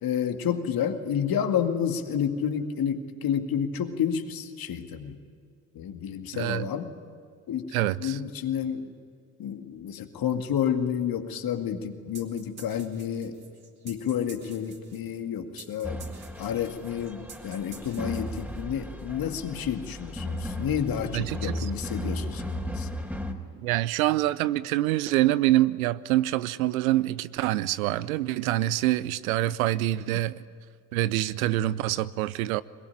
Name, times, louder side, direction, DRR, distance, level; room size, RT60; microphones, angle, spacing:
voice 1, 0.0-5.2 5.7-6.9 7.5-8.9 9.4-13.4 13.8-16.1 16.4-22.9, left 8 dB, 55° left, 2.2 m, -30 dB
voice 2, 6.3-6.7 7.7-8.2 21.1-21.5 23.6-30.4 30.9-32.6, right 15 dB, 80° right, 0.7 m, -25 dB
sound 1, 12.1-18.8, right 5 dB, 45° right, 4.5 m, -50 dB
sound 2, 15.8-23.3, equal, 5° right, 3.5 m, -35 dB
22.0 x 21.0 x 9.9 m
hypercardioid pair, 50°, 42 cm